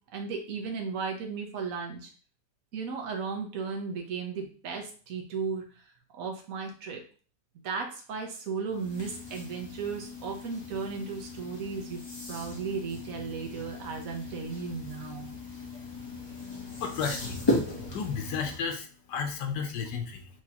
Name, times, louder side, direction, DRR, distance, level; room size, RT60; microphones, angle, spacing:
voice 1, 0.1-2.1 2.7-5.8 6.1-7.0 7.6-12.0 12.3-15.3, right 5 dB, 60° right, 2 dB, 1.3 m, -35 dB
sound 1, 8.7-18.6, left 2 dB, 20° left, 0.9 m, -36 dB
voice 2, 16.5-17.4 17.8-20.3, left 6 dB, 90° left, 4 dB, 1.5 m, -33 dB
6.1 x 3.0 x 2.9 m, 0.40 s
omnidirectional pair, 1.8 m